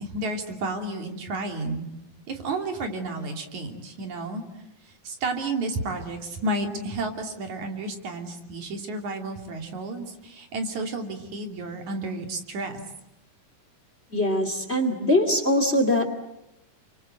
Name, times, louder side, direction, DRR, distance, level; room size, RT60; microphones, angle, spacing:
voice 1, 0.0-1.9 2.3-4.4 5.0-12.7, right 2 dB, 70° right, 4 dB, 4.2 m, -31 dB
voice 2, 14.1-16.1, left 1 dB, 20° left, 7 dB, 2.6 m, -22 dB
29.5 x 24.5 x 8.0 m, 0.89 s
omnidirectional pair, 3.5 m